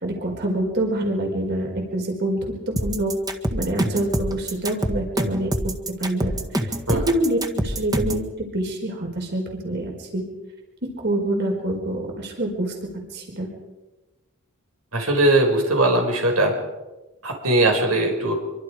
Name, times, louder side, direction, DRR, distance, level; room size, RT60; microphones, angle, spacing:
voice 1, 0.0-3.2 3.5-10.3 10.8-13.5, right 1 dB, 50° right, 1 dB, 4.8 m, -26 dB
sound 1, 2.8-8.3, right 1 dB, 20° right, 1.7 m, -25 dB
voice 2, 14.9-16.5 17.2-18.4, right 1 dB, 85° right, 2 dB, 5.4 m, -20 dB
26.0 x 24.5 x 5.1 m, 1.1 s
head